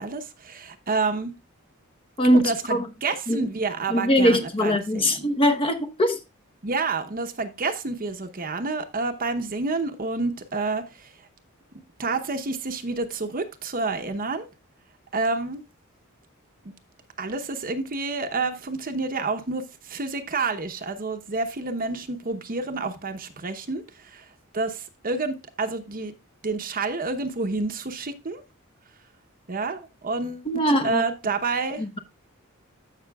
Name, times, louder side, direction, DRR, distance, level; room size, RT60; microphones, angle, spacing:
voice 1, 0.0-1.3 2.3-5.3 6.6-11.1 12.0-14.5 15.1-15.6 17.2-24.3 24.5-26.1 26.4-28.4 29.5-31.8, right 3 dB, 45° right, 0.9 m, -29 dB
voice 2, 2.2-2.9 3.3-3.5 3.9-6.2 30.5-31.0 31.8-32.0, equal, 25° left, 0.9 m, -21 dB
14.5 x 5.8 x 2.3 m
head